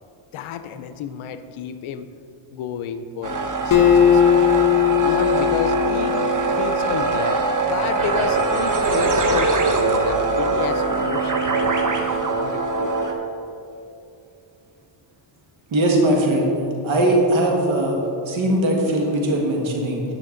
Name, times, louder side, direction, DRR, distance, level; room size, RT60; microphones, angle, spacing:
voice 1, 0.3-2.1 2.5-4.6 5.0-6.2 6.6-13.2, left 7 dB, 75° left, 11 dB, 0.7 m, -31 dB
sound 1, 3.2-13.1, right 3 dB, 40° right, 1.1 m, -22 dB
Acoustic guitar, 3.7-7.1, left 9 dB, 40° left, 1.0 m, -18 dB
voice 2, 15.7-16.5 16.8-18.0 18.3-20.0, right 1 dB, 65° right, 0 dB, 1.8 m, -20 dB
10.5 x 6.4 x 3.9 m, 2.6 s
cardioid pair, 90°, 50 cm